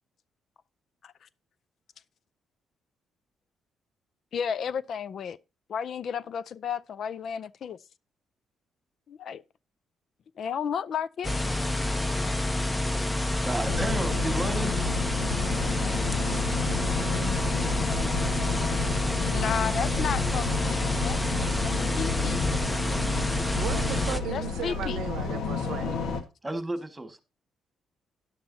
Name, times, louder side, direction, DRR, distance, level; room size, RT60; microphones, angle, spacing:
voice 1, 4.3-5.4 5.7-7.8 9.1-9.4 10.4-11.3 13.7-13.8 19.3-21.3 21.6-22.4 24.3-25.1, left 7 dB, 60° left, 0.5 m, -33 dB
sound 1, 11.2-24.2, left 1 dB, 15° left, 0.8 m, -28 dB
voice 2, 13.2-14.7 26.4-27.2, right 2 dB, 15° right, 1.8 m, -32 dB
sound 2, 13.6-26.2, left 4 dB, 80° left, 1.6 m, -32 dB
voice 3, 23.6-25.9, right 11 dB, 75° right, 0.6 m, -36 dB
12.5 x 10.0 x 2.8 m
cardioid pair, 90°, 0 cm